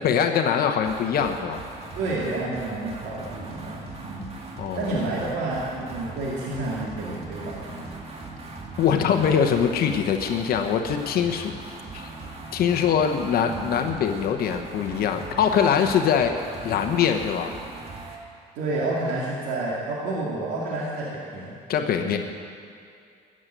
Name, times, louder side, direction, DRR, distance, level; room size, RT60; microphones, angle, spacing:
voice 1, 0.0-1.6 4.6-4.9 8.8-11.5 11.9-12.1 12.5-16.3 16.6-17.5 21.7-22.2, left 7 dB, 65° left, 5 dB, 1.1 m, -23 dB
sound 1, 0.8-18.2, right 3 dB, 35° right, 2.1 m, -40 dB
voice 2, 1.9-4.5 4.8-7.9 9.0-9.3 13.5-14.0 18.5-21.6 22.0-22.2, right 2 dB, 85° right, -6 dB, 2.8 m, -30 dB
15.0 x 7.6 x 9.2 m, 2.3 s
cardioid pair, 110°, 17 cm